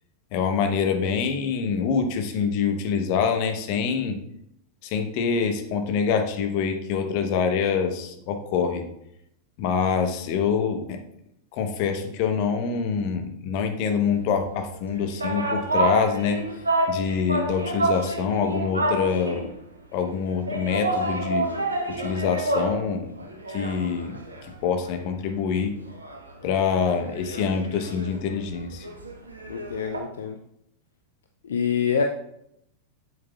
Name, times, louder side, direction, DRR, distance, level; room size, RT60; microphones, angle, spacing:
voice 1, 0.3-4.2 4.8-8.8 9.6-11.0 11.5-16.4 16.9-19.5 19.9-21.5 21.9-23.1 23.5-25.7 26.4-28.9, left 6 dB, 45° left, 6 dB, 0.9 m, -25 dB
sound 1, 14.7-19.6 20.5-22.9 23.2-25.1 25.4-25.5 25.9-30.0, right 2 dB, 80° right, 1.0 m, -29 dB
voice 2, 29.5-30.4 31.5-32.0, left 7 dB, 65° left, 4 dB, 0.5 m, -25 dB
7.7 x 7.7 x 2.4 m, 0.77 s
figure-of-eight pair, 90°, 0 cm